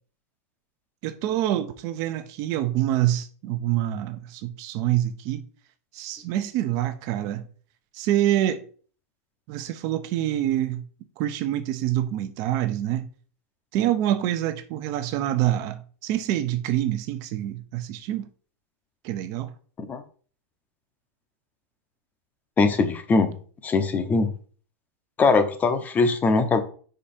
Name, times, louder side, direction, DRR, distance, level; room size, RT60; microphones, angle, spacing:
voice 1, 1.0-5.4 5.9-7.4 7.9-8.6 9.5-10.8 11.2-13.1 13.7-18.2 19.0-19.5, right 13 dB, 45° right, 0.8 m, -26 dB
voice 2, 22.6-23.3 23.6-24.3 25.2-26.6, left 4 dB, 20° left, 0.9 m, -21 dB
5.2 x 4.9 x 4.3 m
hypercardioid pair, 130°, 8 cm